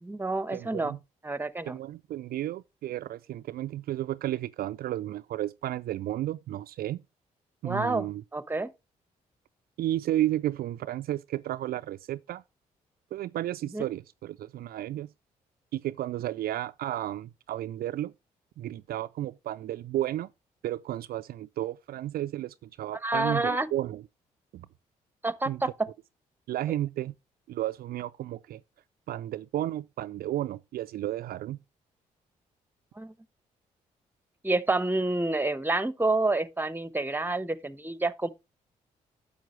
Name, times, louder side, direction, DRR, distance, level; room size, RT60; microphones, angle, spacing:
voice 1, 0.0-0.9 1.2-1.8 7.6-8.1 8.3-8.7 13.7-13.8 23.0-23.7 25.2-25.7 33.0-33.1 34.4-38.3, right 2 dB, 10° right, 0.9 m, -28 dB
voice 2, 0.5-1.0 1.6-7.0 7.6-8.2 9.8-12.4 13.1-15.1 15.7-18.1 18.6-20.3 20.6-24.0 24.5-24.7 25.4-25.6 26.5-27.1 27.5-28.6 29.1-31.6, right 13 dB, 65° right, 0.4 m, -33 dB
10.5 x 6.8 x 3.1 m
hypercardioid pair, 45°, 17 cm